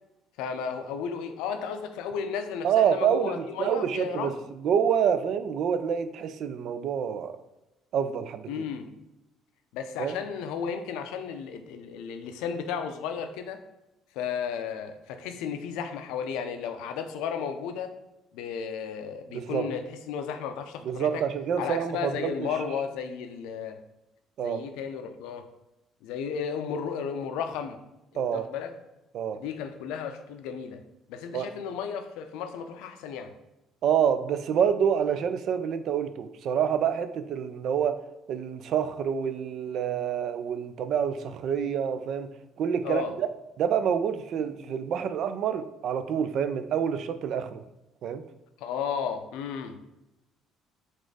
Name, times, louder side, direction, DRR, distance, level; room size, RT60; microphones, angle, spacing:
voice 1, 0.4-4.4 8.5-8.9 9.7-13.6 14.1-17.9 18.3-21.2 21.6-23.8 24.4-25.5 26.0-27.8 28.3-28.7 29.3-30.8 31.1-33.3 42.8-43.1 48.6-50.0, left 7 dB, 80° left, 8 dB, 0.4 m, -34 dB
voice 2, 2.6-4.3 4.6-7.3 7.9-8.6 10.0-10.2 19.3-19.7 20.9-22.5 24.4-24.6 28.2-28.4 29.1-29.4 31.3-31.5 33.8-37.9 38.3-42.3 42.6-43.3 43.6-47.6 48.0-48.2, right 8 dB, 65° right, 10 dB, 0.3 m, -27 dB
4.1 x 2.5 x 4.6 m, 0.94 s
supercardioid pair, 75°, 0 cm